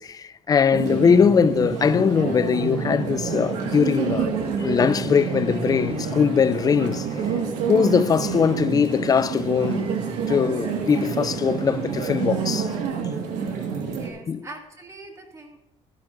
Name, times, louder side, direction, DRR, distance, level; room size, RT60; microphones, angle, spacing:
voice 1, 0.0-4.3 4.6-7.1 7.7-9.9 10.3-12.7 14.3-14.5, left 6 dB, 30° left, 0.4 m, -21 dB
sound 1, 0.7-14.1, right 6 dB, 85° right, 1.8 m, -27 dB
sound 2, 3.3-12.8, right 5 dB, 50° right, 1.3 m, -43 dB
voice 2, 13.9-15.6, right 2 dB, 25° right, 2.0 m, -42 dB
13.0 x 11.5 x 2.6 m
cardioid pair, 100°, 12 cm